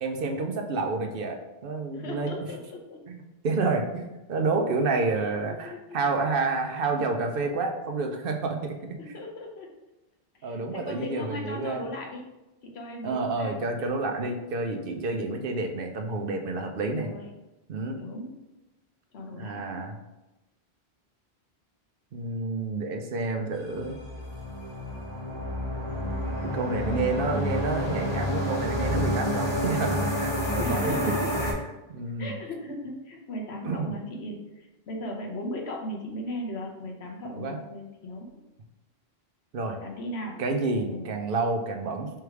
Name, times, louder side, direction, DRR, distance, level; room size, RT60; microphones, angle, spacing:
voice 1, 0.0-2.3 3.1-9.0 10.4-11.8 13.0-17.1 17.7-18.0 19.3-20.0 22.1-24.0 26.5-31.1 31.4-32.3 33.6-33.9 37.4-37.6 39.5-39.8 40.4-42.1, right 3 dB, 65° right, 4 dB, 0.8 m, -29 dB
voice 2, 1.9-3.0 5.2-5.8 6.9-7.1 9.0-9.7 10.4-12.2 12.6-13.5 15.0-15.3 16.9-17.3 18.0-18.4 19.1-19.6 26.9-27.2 30.6-31.4 32.2-38.3 39.8-40.4 40.9-41.1, left 1 dB, 80° left, 1 dB, 1.1 m, -37 dB
sound 1, 23.7-31.5, left 1 dB, 25° left, 1.0 m, -29 dB
3.5 x 3.3 x 4.6 m, 1.0 s
omnidirectional pair, 1.1 m